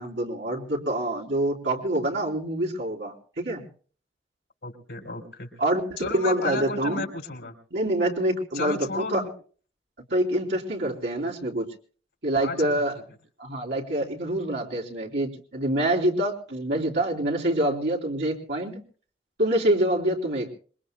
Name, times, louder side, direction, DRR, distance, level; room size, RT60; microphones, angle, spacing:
voice 1, 0.0-3.6 5.6-7.0 7.7-9.2 10.1-11.7 12.2-12.9 13.4-18.7 19.4-20.5, right 1 dB, 80° right, -1 dB, 3.4 m, -26 dB
voice 2, 4.6-5.5 6.0-7.5 8.5-9.3 12.4-12.7, left 3 dB, 85° left, 4 dB, 4.0 m, -33 dB
26.5 x 22.0 x 2.2 m, 0.42 s
head